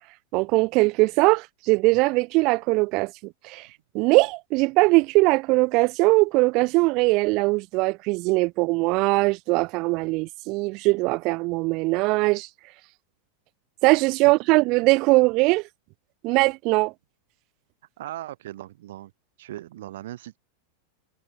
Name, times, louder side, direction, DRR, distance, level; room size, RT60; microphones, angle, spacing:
voice 1, 0.3-3.7 3.9-12.5 13.8-15.6 16.2-16.9, right 24 dB, 40° right, 0.5 m, -21 dB
voice 2, 18.0-19.1 19.4-20.4, right 14 dB, 70° right, 5.1 m, -38 dB
supercardioid pair, 165°, 0 cm